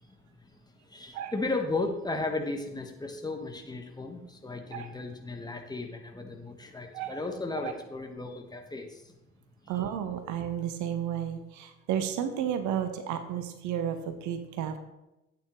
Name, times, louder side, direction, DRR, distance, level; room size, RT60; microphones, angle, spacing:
voice 1, 0.1-0.6 0.8-9.1 9.6-9.8, left 3 dB, 10° left, 3 dB, 1.4 m, -35 dB
voice 2, 9.7-14.8, right 9 dB, 50° right, 9 dB, 1.1 m, -32 dB
12.5 x 8.9 x 3.2 m, 0.94 s
figure-of-eight pair, 60°, 36 cm